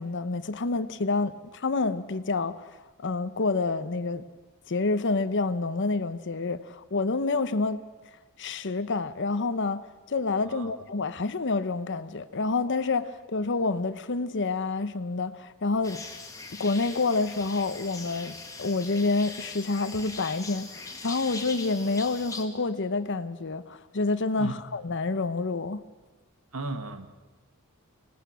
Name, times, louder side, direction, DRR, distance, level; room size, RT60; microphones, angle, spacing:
voice 1, 0.0-2.7 3.0-4.2 4.7-7.8 8.4-16.0 16.5-25.8, left 3 dB, 55° left, 13 dB, 0.9 m, -28 dB
sound 1, 15.8-22.4, left 3 dB, 15° left, 1.8 m, -41 dB
voice 2, 26.5-27.1, right 3 dB, 80° right, 9 dB, 1.5 m, -35 dB
25.0 x 18.5 x 6.2 m, 1.2 s
head